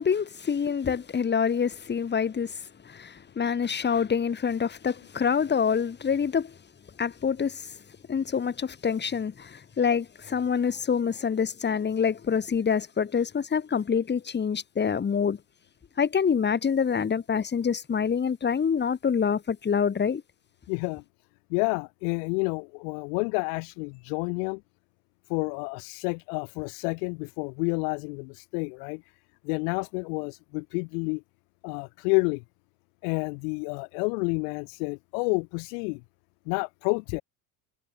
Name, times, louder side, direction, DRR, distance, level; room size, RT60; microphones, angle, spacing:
voice 1, 0.0-2.6 2.8-6.5 7.0-7.7 8.1-15.4 16.0-20.2, left 6 dB, 20° left, 1.6 m, -26 dB
voice 2, 20.7-21.0 21.5-24.6 25.3-29.0 29.4-31.2 31.6-32.4 33.0-36.0 36.5-37.2, left 36 dB, 65° left, 0.6 m, -29 dB
supercardioid pair, 100°, 49 cm